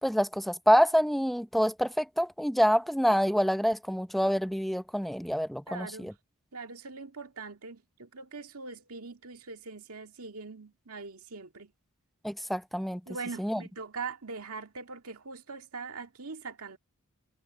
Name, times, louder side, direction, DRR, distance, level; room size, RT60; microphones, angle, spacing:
voice 1, 0.0-6.1 12.2-13.0 13.4-13.6, equal, ahead, 0.8 m, -26 dB
voice 2, 5.7-6.1 6.5-11.7 13.1-16.8, right 4 dB, 80° right, 2.0 m, -42 dB
head